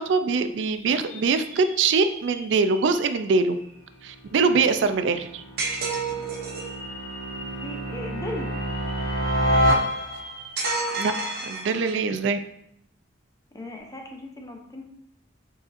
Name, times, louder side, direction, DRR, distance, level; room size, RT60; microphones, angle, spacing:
voice 1, 0.0-3.6 4.0-5.4 11.0-11.1 11.4-12.4, right 4 dB, 80° right, 9 dB, 0.4 m, -23 dB
sound 1, 0.6-4.6 5.1-5.2 6.2-11.2 11.6-11.7 13.6-13.8, right 1 dB, 15° right, 1.0 m, -43 dB
sound 2, 4.1-10.5, equal, 70° left, 1.1 m, -28 dB
sound 3, 5.6-6.8 10.6-12.1, right 3 dB, 55° right, 0.8 m, -30 dB
voice 2, 7.6-8.5 13.5-14.8, left 1 dB, 20° left, 2 dB, 0.6 m, -37 dB
5.0 x 4.1 x 2.5 m, 0.74 s
head